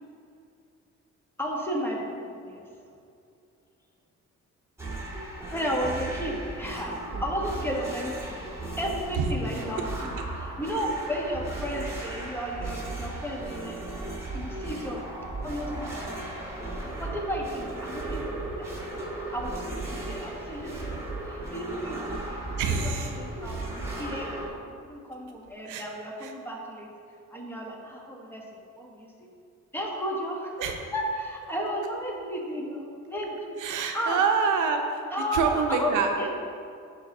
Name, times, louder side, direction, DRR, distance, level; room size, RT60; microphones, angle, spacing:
voice 1, 1.4-2.6 5.5-6.9 7.2-8.4 8.8-13.8 14.3-15.0 15.4-16.5 17.0-18.7 19.3-26.9 27.3-28.4 28.7-29.3 29.7-30.6 30.9-33.6 33.9-34.2 35.1-35.9 36.2-36.3, equal, 5° left, -1 dB, 1.3 m, -33 dB
sound 1, 4.8-24.5, right 2 dB, 10° right, 1.7 m, -36 dB
voice 2, 22.6-23.2 25.6-25.9 26.2-26.3 30.6-30.8 33.6-35.0 35.3-36.1, right 6 dB, 90° right, 4 dB, 0.7 m, -26 dB
10.5 x 3.7 x 3.7 m, 2.5 s
cardioid pair, 90°, 30 cm